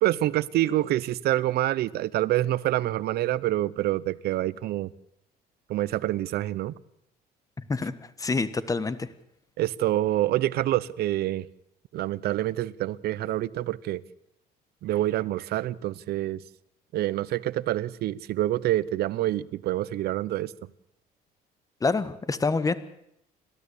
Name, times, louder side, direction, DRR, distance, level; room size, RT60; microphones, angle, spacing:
voice 1, 0.0-4.9 5.7-6.7 9.6-11.5 11.9-14.0 14.8-16.4 16.9-20.5, right 14 dB, 70° right, 0.8 m, -26 dB
voice 2, 7.7-9.1 21.8-22.7, left 4 dB, 20° left, 1.4 m, -27 dB
29.5 x 13.0 x 8.4 m
cardioid pair, 110°, 17 cm